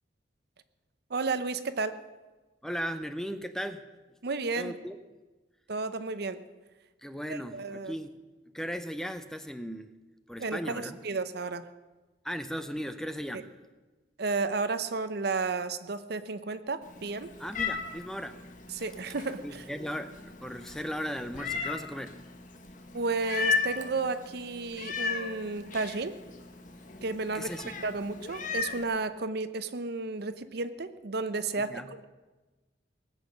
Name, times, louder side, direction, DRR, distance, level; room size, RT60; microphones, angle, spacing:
voice 1, 1.1-2.0 4.2-4.8 5.7-6.4 7.3-7.9 10.4-11.7 14.2-17.3 18.7-19.6 22.9-26.2 27.0-27.5 27.8-32.0, right 3 dB, 60° right, 12 dB, 0.7 m, -32 dB
voice 2, 2.6-3.8 4.6-5.0 7.0-8.1 8.5-9.9 10.3-11.0 12.2-13.5 17.4-18.4 19.4-22.2 27.3-27.7 31.7-31.9, equal, 5° left, 9 dB, 0.6 m, -37 dB
Meow, 16.8-28.8, left 5 dB, 45° left, 1.2 m, -36 dB
19.5 x 8.1 x 6.3 m, 1.2 s
head